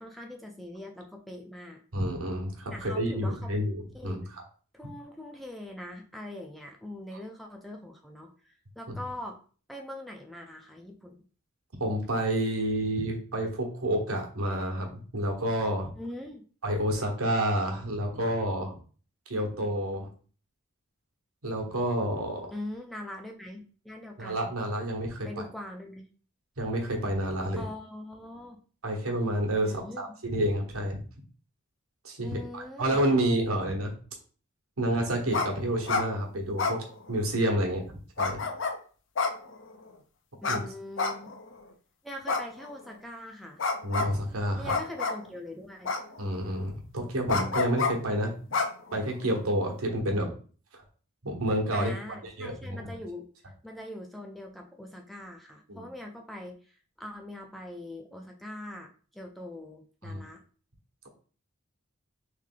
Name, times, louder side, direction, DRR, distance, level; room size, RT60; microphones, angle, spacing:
voice 1, 0.0-1.8 2.7-3.5 3.9-4.3 4.7-9.4 9.7-11.2 16.0-16.4 22.5-24.5 25.2-26.0 27.6-28.6 29.6-30.0 32.2-33.0 40.4-41.3 42.0-43.6 44.6-45.9 51.7-53.3 53.6-60.4, left 1 dB, ahead, 1 dB, 0.3 m, -42 dB
voice 2, 1.9-4.2 11.8-15.9 16.6-18.8 19.3-20.1 21.4-22.5 24.2-25.3 26.6-27.6 28.8-31.0 32.0-33.9 34.8-37.8 38.2-38.4 40.5-40.6 43.8-44.7 46.2-48.3 48.9-50.3 51.2-51.9 52.2-53.0 55.7-55.9 60.0-60.2, right 1 dB, 85° right, 1 dB, 1.1 m, -29 dB
sound 1, 35.3-35.5 35.8-36.1 36.6-37.4 38.2-38.8 39.2-39.9 40.4-40.6 41.0-41.6 42.3-43.0 43.6-44.1 44.7-45.3 45.9-46.4 47.3-47.9 48.5-49.3, left 4 dB, 60° left, 0.5 m, -29 dB
3.3 x 3.2 x 3.7 m, 0.40 s
head